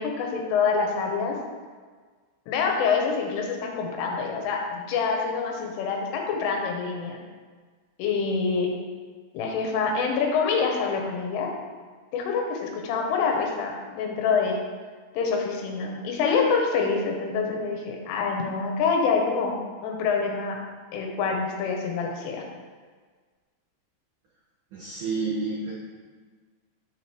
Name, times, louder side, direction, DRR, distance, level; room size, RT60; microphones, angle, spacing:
voice 1, 0.0-1.4 2.5-7.2 8.0-8.7 9.3-11.5 12.1-14.6 15.1-19.5 19.8-20.6 20.9-22.4, left 5 dB, 85° left, 1 dB, 3.4 m, -26 dB
voice 2, 24.7-25.7, right 3 dB, 90° right, -6 dB, 1.8 m, -29 dB
8.6 x 6.5 x 3.1 m, 1.5 s
omnidirectional pair, 5.7 m